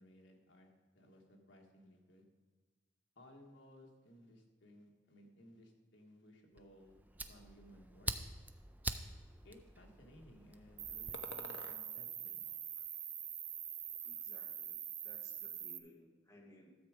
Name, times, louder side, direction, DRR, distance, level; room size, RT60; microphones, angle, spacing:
voice 1, 0.0-2.2 3.1-7.0 7.3-8.1 9.4-12.5, equal, 75° left, 2 dB, 1.6 m, -60 dB
Fire, 6.6-11.1, right 2 dB, 10° right, 0.3 m, -45 dB
Cricket, 10.8-15.8, right 10 dB, 35° right, 0.7 m, -44 dB
sound 1, 11.1-11.8 12.4-13.4 13.6-14.4, left 3 dB, 60° left, 0.7 m, -53 dB
voice 2, 14.0-14.8 15.0-16.7, left 1 dB, 15° left, -2 dB, 1.5 m, -61 dB
13.0 x 7.3 x 5.0 m, 1.3 s
head